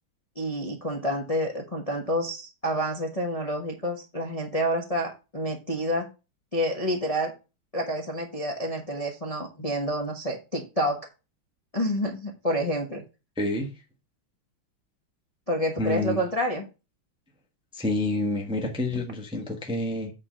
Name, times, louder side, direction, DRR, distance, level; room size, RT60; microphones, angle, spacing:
voice 1, 0.3-6.1 6.5-7.3 7.7-11.1 11.7-13.0 15.5-16.6, equal, 25° left, 0.9 m, -28 dB
voice 2, 13.4-13.7 15.8-16.2 17.7-20.1, left 2 dB, 5° right, 0.9 m, -28 dB
8.3 x 3.8 x 5.5 m
omnidirectional pair, 2.3 m